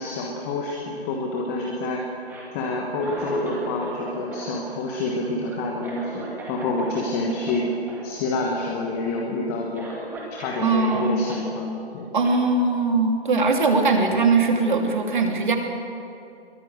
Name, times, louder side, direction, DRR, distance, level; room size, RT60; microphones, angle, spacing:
voice 1, 0.0-2.0 2.5-7.7 8.0-9.9 10.3-12.1, left 2 dB, 15° left, 0 dB, 1.3 m, -28 dB
Cough, 2.1-4.0 4.3-7.0 7.3-7.5 7.9-8.0 8.3-8.8 9.3-9.4 9.7-11.5 12.2-12.4, right 2 dB, 5° right, 2.0 m, -38 dB
voice 2, 10.6-11.3 12.1-15.6, right 3 dB, 50° right, 3 dB, 2.9 m, -20 dB
22.5 x 20.0 x 6.7 m, 2.6 s
figure-of-eight pair, 145°, 32 cm